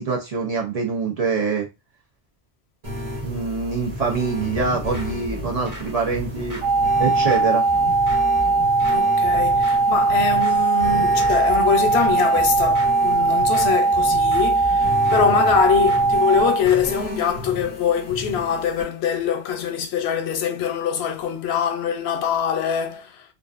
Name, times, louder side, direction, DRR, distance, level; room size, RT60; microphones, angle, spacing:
voice 1, 0.0-1.7 3.2-6.6 7.0-7.7, right 5 dB, 45° right, 0.6 m, -24 dB
sound 1, 2.8-18.8, left 1 dB, 90° right, 1.3 m, -34 dB
sound 2, 4.5-17.2, equal, 20° right, 0.8 m, -36 dB
sound 3, 6.6-16.6, right 3 dB, 70° right, 1.0 m, -19 dB
voice 2, 8.9-23.2, left 7 dB, 90° left, 0.8 m, -23 dB
2.4 x 2.4 x 2.3 m
omnidirectional pair, 1.0 m